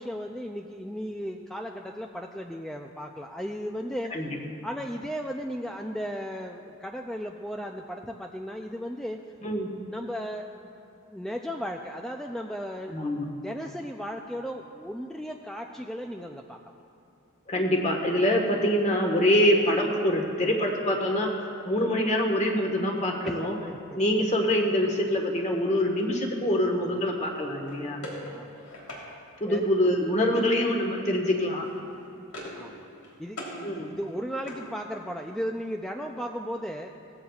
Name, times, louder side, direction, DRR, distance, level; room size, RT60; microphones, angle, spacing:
voice 1, 0.0-4.1 4.6-9.2 9.9-10.5 11.1-12.9 13.4-16.6 23.2-24.0 28.2-28.6 29.5-29.6 32.6-32.9 33.2-36.9, equal, ahead, 2 dB, 0.3 m, -35 dB
voice 2, 12.9-13.3 17.5-21.3 21.6-23.6 23.9-28.0 29.4-31.7 33.6-33.9, left 1 dB, 30° left, 1 dB, 1.4 m, -25 dB
sound 1, 27.6-29.0 30.3-30.8 31.0-31.3 31.6-32.7 32.9-33.6 34.0-35.2, left 1 dB, 90° left, 3.4 m, -42 dB
17.5 x 14.5 x 2.4 m, 2.6 s
head